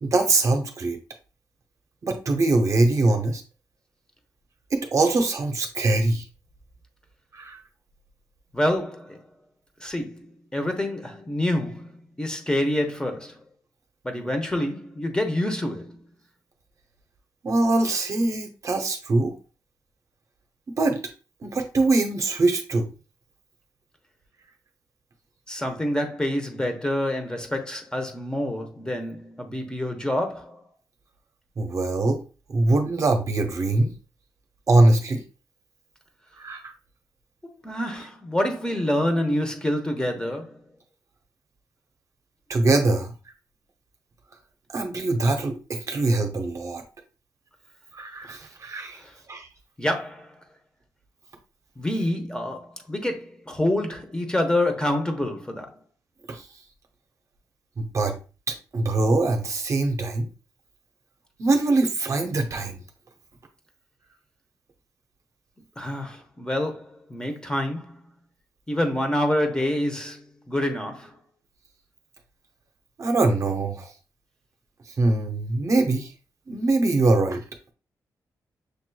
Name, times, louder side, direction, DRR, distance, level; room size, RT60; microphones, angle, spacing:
voice 1, 0.0-1.0 2.0-3.4 4.7-6.2 7.3-7.6 17.4-19.4 20.7-21.0 21.4-22.9 31.6-32.2 32.5-33.9 34.7-35.2 36.4-36.7 42.5-43.1 44.7-46.8 47.9-49.0 49.3-49.5 56.3-56.4 57.8-58.1 58.5-60.3 61.4-62.8 73.0-73.9 75.0-76.1 76.5-77.4, right 2 dB, 45° right, 0.8 m, -23 dB
voice 2, 8.5-9.2 9.8-13.4 14.0-16.0 25.5-30.6 37.4-40.6 48.9-49.1 49.8-50.4 51.8-55.8 65.8-68.0 68.7-71.2, left 1 dB, 10° left, 1.0 m, -27 dB
6.6 x 3.0 x 2.3 m
cardioid pair, 100°, 7 cm